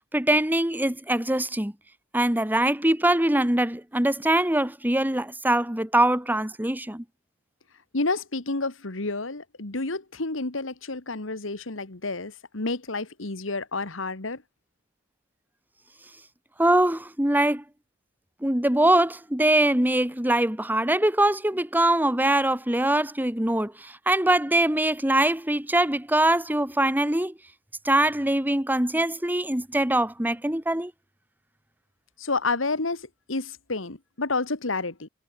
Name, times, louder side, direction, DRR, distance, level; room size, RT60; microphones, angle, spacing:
voice 1, 0.0-1.7 2.1-7.0 16.6-17.6 18.4-27.3 27.8-30.9, right 1 dB, 10° right, 1.8 m, -23 dB
voice 2, 7.9-14.4 32.2-35.1, left 3 dB, 75° left, 2.1 m, -30 dB
head